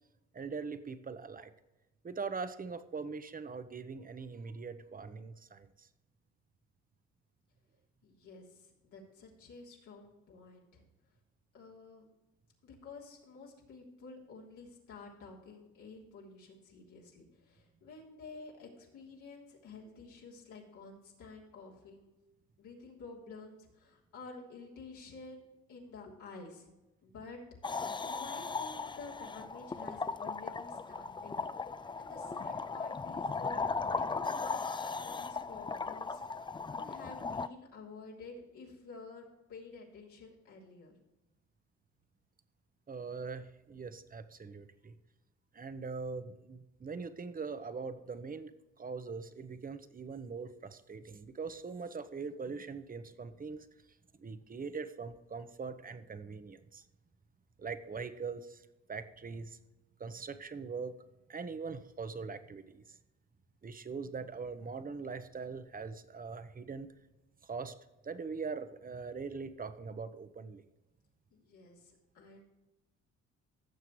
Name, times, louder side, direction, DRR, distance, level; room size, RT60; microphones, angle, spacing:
voice 1, 0.3-1.5 2.0-5.9 42.9-44.9 45.5-48.5 48.8-53.7 54.2-56.8 57.6-58.6 58.9-59.6 60.0-60.9 61.3-63.0 63.6-66.9 67.4-67.7 68.0-70.6, right 5 dB, 30° right, 11 dB, 0.9 m, -42 dB
voice 2, 8.0-10.8 11.5-12.1 12.6-22.1 22.6-25.4 25.7-26.7 27.0-27.4 28.0-34.7 35.0-40.9 71.3-72.4, left 3 dB, 80° left, -3 dB, 3.2 m, -51 dB
sound 1, 27.6-37.5, left 4 dB, 15° left, 0.4 m, -37 dB
16.0 x 6.8 x 3.1 m, 1.0 s
cardioid pair, 90°, 30 cm